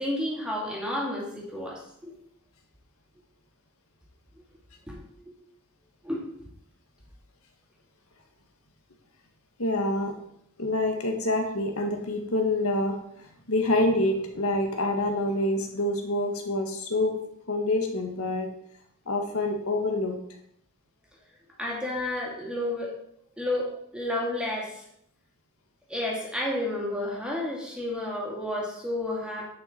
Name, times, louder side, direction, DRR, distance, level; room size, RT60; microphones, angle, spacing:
voice 1, 0.0-2.1 4.9-5.0 6.0-6.2 21.6-22.9 23.4-24.8 25.9-29.5, left 1 dB, 5° right, -3 dB, 2.5 m, -31 dB
voice 2, 9.6-10.1 10.6-17.2 17.5-18.5 19.1-20.2, left 1 dB, 85° left, 3 dB, 1.6 m, -27 dB
9.9 x 5.7 x 4.4 m, 0.73 s
head